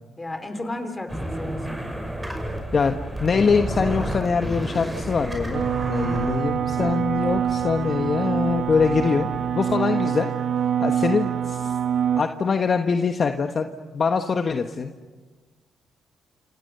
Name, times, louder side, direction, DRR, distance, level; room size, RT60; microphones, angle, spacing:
voice 1, 0.2-1.8 6.0-6.6 9.8-10.2 10.9-11.0, left 1 dB, 20° left, 8 dB, 4.2 m, -35 dB
sound 1, 1.1-9.5, right 1 dB, 10° right, 5.8 m, -32 dB
voice 2, 2.7-9.3 9.5-10.3 10.8-11.7 12.1-14.9, left 5 dB, 45° left, 6 dB, 1.3 m, -23 dB
sound 2, 5.5-12.2, right 8 dB, 65° right, 1.5 m, -25 dB
28.0 x 27.5 x 6.8 m, 1.4 s
cardioid pair, 90°, 0 cm